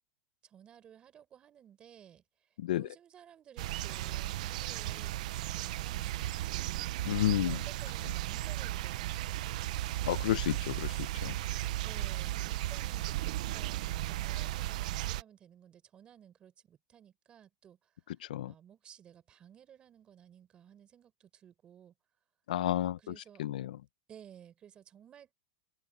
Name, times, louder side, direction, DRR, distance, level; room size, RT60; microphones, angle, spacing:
voice 1, 0.4-2.2 2.7-6.8 7.4-9.8 11.8-17.9 18.4-21.9 23.0-23.5 24.1-25.3, right 9 dB, 20° right, 5.2 m, -56 dB
sound 1, 3.6-15.2, right 15 dB, 60° right, 0.8 m, -35 dB
voice 2, 7.0-7.6 10.1-10.9 11.2-11.3 18.3-18.5 22.5-23.0 23.4-23.7, left 13 dB, 80° left, 0.9 m, -30 dB
open air
supercardioid pair, 155°, 4 cm